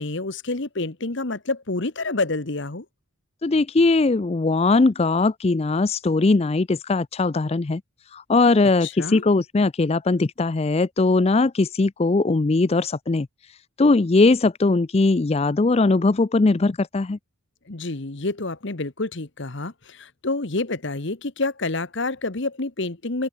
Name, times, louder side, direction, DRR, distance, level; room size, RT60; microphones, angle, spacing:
voice 1, 0.0-2.8 8.8-9.2 17.7-23.3, left 2 dB, 55° left, 1.3 m, -28 dB
voice 2, 3.4-7.8 8.1-17.2, left 3 dB, 30° left, 0.4 m, -20 dB
head